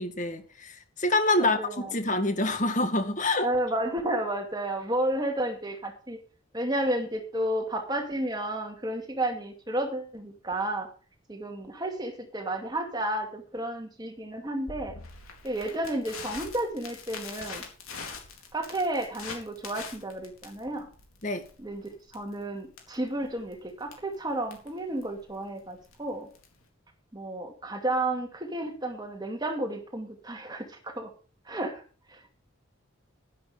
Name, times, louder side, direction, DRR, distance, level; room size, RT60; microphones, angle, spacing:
voice 1, 0.0-1.6 1.9-3.5 21.2-21.5, left 2 dB, 35° left, 1.9 m, -26 dB
voice 2, 1.4-1.9 3.4-6.2 6.5-10.9 11.3-14.9 15.4-17.6 18.5-20.9 21.6-21.8 22.1-26.3 27.1-31.1 31.5-31.8 32.1-32.3, right 1 dB, 20° right, 2.4 m, -32 dB
Crackle, 14.7-26.6, left 5 dB, 90° left, 4.1 m, -44 dB
11.5 x 11.0 x 5.1 m
head